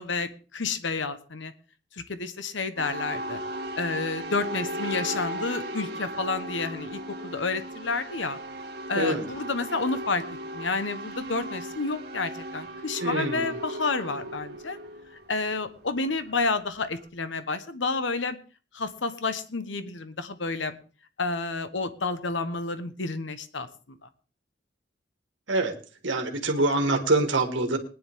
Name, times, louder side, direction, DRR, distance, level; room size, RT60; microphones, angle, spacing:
voice 1, 0.0-1.5 1.9-3.4 3.8-8.4 8.9-10.2 10.5-14.8 15.3-18.4 18.7-20.8 21.2-23.7, left 3 dB, 85° left, 11 dB, 1.1 m, -30 dB
sound 1, 2.8-17.0, right 1 dB, 60° right, 2.2 m, -37 dB
voice 2, 13.0-13.5 25.5-25.7 26.0-27.8, right 2 dB, 80° right, 4 dB, 2.1 m, -25 dB
21.5 x 10.0 x 3.7 m, 0.37 s
head